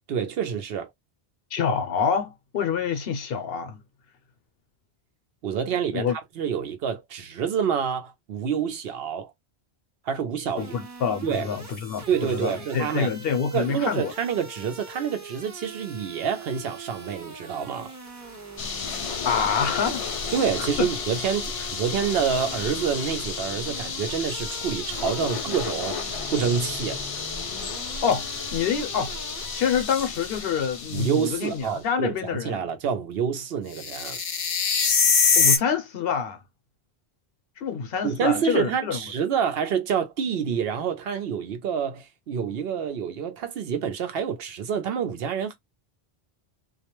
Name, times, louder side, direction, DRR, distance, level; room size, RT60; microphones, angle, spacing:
voice 1, 0.1-0.9 5.4-9.3 10.1-10.7 11.2-11.5 12.1-13.1 13.5-17.9 20.3-27.0 30.9-34.2 38.0-45.6, right 7 dB, 70° right, 0.8 m, -27 dB
voice 2, 1.5-3.8 5.9-6.2 10.6-14.1 19.2-20.1 20.6-20.9 28.0-29.2 29.5-32.6 35.4-36.4 37.6-39.0, left 6 dB, 70° left, 0.8 m, -27 dB
sound 1, 10.6-29.9, right 3 dB, 20° right, 0.6 m, -43 dB
sound 2, 18.6-31.6 33.7-35.6, left 5 dB, 50° left, 0.4 m, -28 dB
2.3 x 2.1 x 2.9 m
omnidirectional pair, 1.1 m